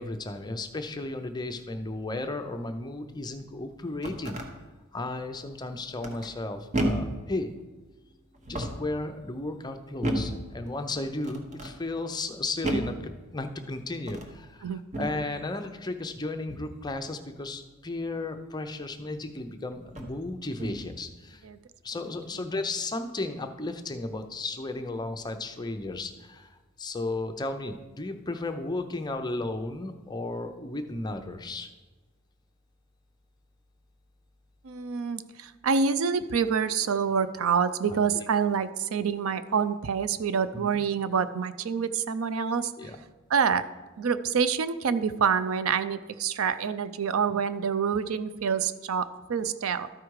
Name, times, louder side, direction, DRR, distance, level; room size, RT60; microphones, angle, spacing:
voice 1, 0.0-4.4 4.9-7.5 8.5-21.4 21.8-31.7 37.9-38.3 40.5-40.8 42.8-43.0, left 2 dB, 20° left, 6 dB, 0.6 m, -34 dB
sound 1, 3.7-4.5 6.0-6.4 6.7-7.2 8.3-8.9 10.0-10.4 11.2-11.8 12.6-13.0 14.0-14.4 14.9-15.2 16.5-16.8 18.9-19.0 19.9-20.2 20.6-21.0, right 1 dB, 35° right, 1.0 m, -32 dB
voice 2, 34.6-42.7 43.3-43.6 44.0-49.9, right 6 dB, 80° right, 13 dB, 0.5 m, -27 dB
12.5 x 4.9 x 4.7 m, 1.2 s
head